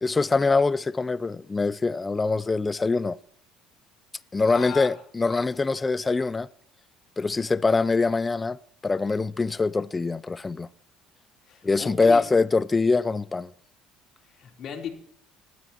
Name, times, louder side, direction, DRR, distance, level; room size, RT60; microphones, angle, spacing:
voice 1, 0.0-3.2 4.3-6.5 7.2-8.6 8.8-10.7 11.6-13.5, left 3 dB, 15° left, 0.5 m, -23 dB
voice 2, 4.5-4.9 11.5-12.2 14.3-14.9, left 8 dB, 45° left, 3.8 m, -36 dB
19.0 x 12.5 x 4.4 m
cardioid pair, 135°, 0 cm